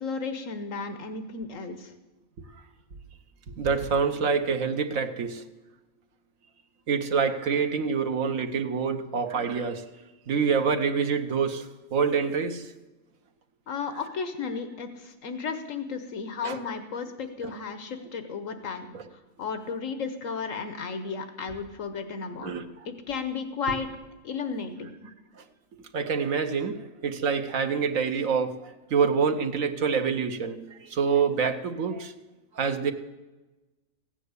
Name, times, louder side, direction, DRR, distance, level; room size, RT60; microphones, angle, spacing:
voice 1, 0.0-1.9 13.7-22.5 22.8-23.9 24.2-25.0, left 5 dB, 80° left, 9 dB, 1.4 m, -34 dB
voice 2, 3.6-5.4 6.9-9.9 10.3-12.7 16.4-16.6 18.9-19.0 22.4-22.9 25.9-32.1 32.5-32.9, right 6 dB, 85° right, 7 dB, 1.5 m, -26 dB
15.5 x 9.1 x 8.2 m, 1.1 s
omnidirectional pair, 1.4 m